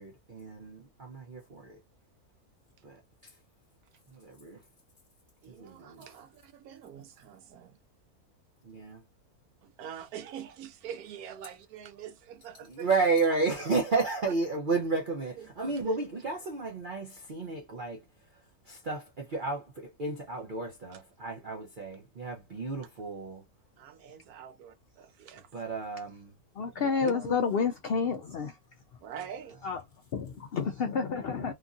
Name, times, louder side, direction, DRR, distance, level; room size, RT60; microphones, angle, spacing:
voice 1, 0.0-1.8 2.8-3.3 4.1-4.6 5.5-6.1 8.6-9.0 12.7-18.0 18.7-23.4 25.5-26.3 26.8-27.6, right 3 dB, 45° right, 0.7 m, -32 dB
voice 2, 5.4-7.7 9.6-12.9 13.3-13.6 15.3-15.5 15.8-16.1 20.9-21.0 23.8-25.5 29.0-29.6, right 9 dB, 80° right, 1.1 m, -44 dB
voice 3, 26.6-28.5 29.6-29.8 30.1-31.5, left 5 dB, 75° left, 0.5 m, -29 dB
2.9 x 2.5 x 2.4 m
omnidirectional pair, 1.6 m